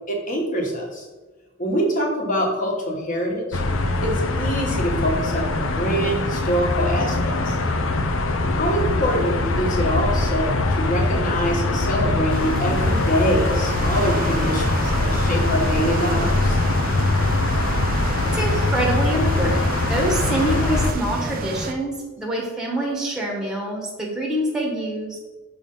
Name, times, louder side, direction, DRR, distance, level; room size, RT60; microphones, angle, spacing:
voice 1, 0.1-1.1 1.6-3.6 4.0-7.6 8.5-16.6, equal, 40° left, -1 dB, 1.4 m, -24 dB
sound 1, 3.5-20.9, left 2 dB, 75° left, 0.6 m, -22 dB
sound 2, 12.3-21.7, right 3 dB, 45° right, 0.5 m, -31 dB
voice 2, 18.2-25.2, right 1 dB, 5° right, -2 dB, 1.1 m, -25 dB
6.5 x 3.4 x 5.4 m, 1.2 s
head